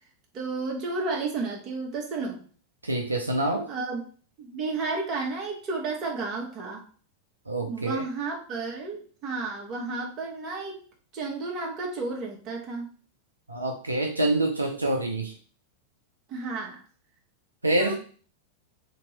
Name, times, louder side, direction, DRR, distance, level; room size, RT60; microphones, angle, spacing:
voice 1, 0.3-2.4 3.7-4.0 4.4-6.9 7.7-10.8 11.1-12.9 16.3-16.8 17.8-17.9, right 3 dB, 35° right, 0 dB, 1.2 m, -32 dB
voice 2, 2.8-3.7 7.5-8.0 13.5-15.3 17.6-17.9, right 2 dB, 80° right, 2 dB, 0.5 m, -26 dB
2.9 x 2.9 x 4.1 m, 0.41 s
figure-of-eight pair, 90°, 0 cm